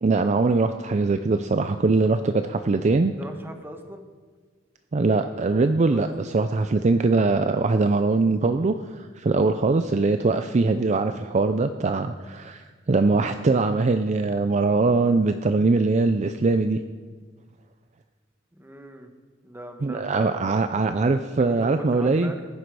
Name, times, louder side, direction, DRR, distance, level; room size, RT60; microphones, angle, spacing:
voice 1, 0.0-3.1 4.9-16.8 19.8-22.3, right 3 dB, 35° right, 8 dB, 0.4 m, -22 dB
voice 2, 3.2-4.1 5.2-5.5 5.9-6.1 18.5-19.1 19.4-20.5 21.3-22.5, equal, 10° right, 5 dB, 1.2 m, -40 dB
16.5 x 10.0 x 4.8 m, 1.5 s
head